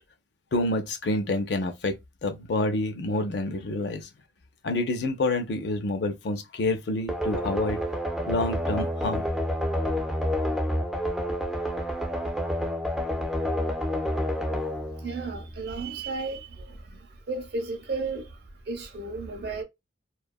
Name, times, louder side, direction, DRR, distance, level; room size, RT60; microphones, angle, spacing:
voice 1, 0.5-2.0 2.2-4.1 4.6-7.8 8.2-9.2, left 2 dB, 60° left, 0.4 m, -28 dB
sound 1, 7.1-15.8, equal, ahead, 0.3 m, -29 dB
voice 2, 15.0-18.4 18.7-19.6, right 3 dB, 60° right, 0.7 m, -34 dB
2.6 x 2.3 x 2.2 m
head